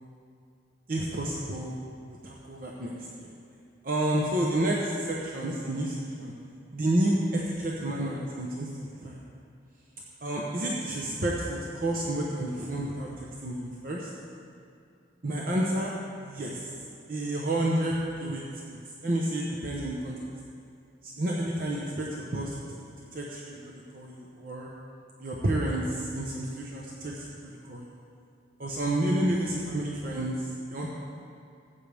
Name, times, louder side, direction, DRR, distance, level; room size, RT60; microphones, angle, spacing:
voice 1, 0.9-1.8 2.1-3.3 3.8-6.3 6.7-9.2 10.2-14.1 15.2-16.0 16.2-16.7 17.1-18.4 18.7-18.8 19.0-20.2 21.0-22.6 23.1-24.7 25.2-27.9 28.6-30.9, right 1 dB, 50° right, -3 dB, 0.9 m, -30 dB
14.0 x 8.6 x 3.5 m, 2.4 s
head